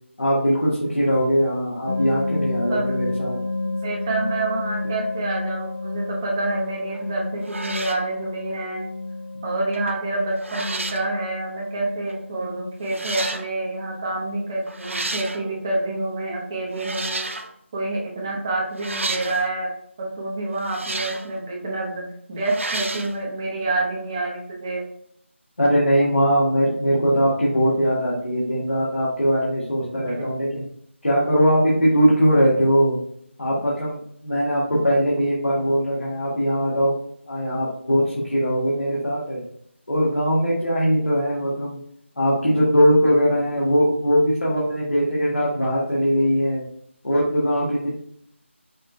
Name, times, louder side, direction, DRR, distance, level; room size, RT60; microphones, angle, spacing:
voice 1, 0.2-3.4 25.6-30.6 31.0-33.0 33.4-34.0 34.2-36.9 37.3-39.4 39.9-41.8 42.2-46.6 47.0-48.0, equal, 90° left, -6 dB, 1.5 m, -20 dB
sound 1, 1.9-16.7, left 2 dB, 55° left, 0.8 m, -32 dB
voice 2, 3.6-8.8 9.4-17.3 17.7-19.7 20.0-22.0 22.3-24.8 30.0-30.3, right 2 dB, 20° right, -2 dB, 0.8 m, -27 dB
sound 2, 6.9-7.1 7.4-8.1 9.7-10.0 10.4-11.1 12.1-12.2 12.9-13.5 14.7-15.4 16.7-17.5 18.8-19.5 20.6-21.3 22.4-23.1, right 2 dB, 75° right, 0.6 m, -31 dB
5.4 x 2.5 x 3.2 m, 0.68 s
figure-of-eight pair, 170°, 7 cm